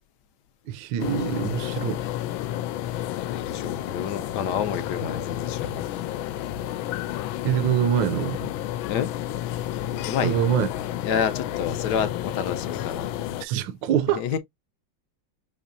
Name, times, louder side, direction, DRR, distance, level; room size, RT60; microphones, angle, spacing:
voice 1, 0.7-2.0 7.4-8.5 10.2-10.7 13.4-14.2, right 9 dB, 75° right, 1.3 m, -24 dB
sound 1, 1.0-13.4, left 12 dB, 90° left, 1.4 m, -31 dB
voice 2, 3.5-5.8 8.9-9.1 10.0-10.4 11.0-13.1 14.1-14.4, left 8 dB, 70° left, 1.1 m, -28 dB
6.4 x 3.0 x 2.5 m
omnidirectional pair, 2.1 m